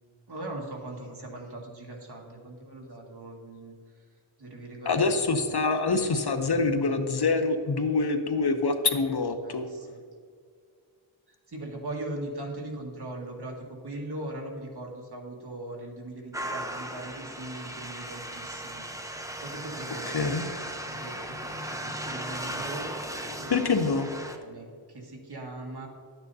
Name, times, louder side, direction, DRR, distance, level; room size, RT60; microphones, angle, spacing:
voice 1, 0.3-3.8 4.4-5.0 5.5-5.7 9.4-10.0 11.5-23.6 24.3-25.9, right 2 dB, 50° right, 0 dB, 2.0 m, -40 dB
voice 2, 4.9-9.7 20.1-20.5 23.5-24.1, left 3 dB, 50° left, 7 dB, 0.9 m, -25 dB
sound 1, 16.3-24.4, right 1 dB, 5° right, 0.8 m, -37 dB
12.0 x 9.1 x 2.8 m, 2.1 s
wide cardioid pair, 80°, 49 cm